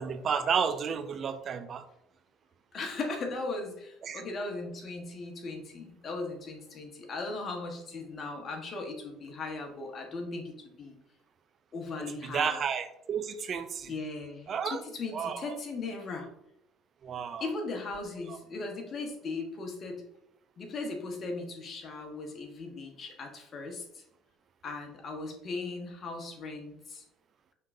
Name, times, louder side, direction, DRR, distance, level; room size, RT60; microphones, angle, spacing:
voice 1, 0.0-1.8 4.0-4.2 12.2-13.9 14.5-14.8 15.1-15.5 17.0-17.5 18.3-18.4, right 7 dB, 45° right, 10 dB, 0.4 m, -32 dB
voice 2, 2.7-11.0 11.7-12.6 13.9-16.3 17.4-20.0 20.6-24.0 24.6-27.0, left 3 dB, 45° left, 2 dB, 1.2 m, -38 dB
5.3 x 3.6 x 2.6 m, 0.82 s
hypercardioid pair, 70°, 0 cm